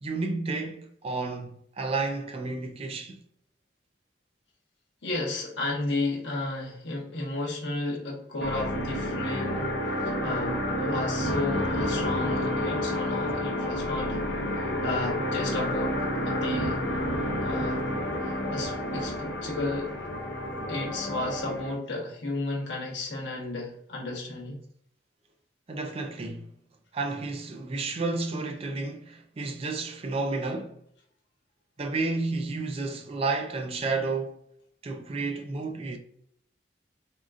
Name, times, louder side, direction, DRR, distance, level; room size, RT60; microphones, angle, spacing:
voice 1, 0.0-3.2 25.7-26.5 26.9-30.8 31.8-34.4 34.8-36.0, right 3 dB, 35° right, 0.4 m, -31 dB
voice 2, 5.0-9.7 10.0-14.2 14.8-16.8 17.4-17.9 18.2-19.9 20.7-24.6, left 2 dB, 85° left, 1.0 m, -33 dB
sound 1, 8.4-21.7, left 1 dB, 70° left, 0.6 m, -30 dB
3.6 x 2.3 x 2.5 m
head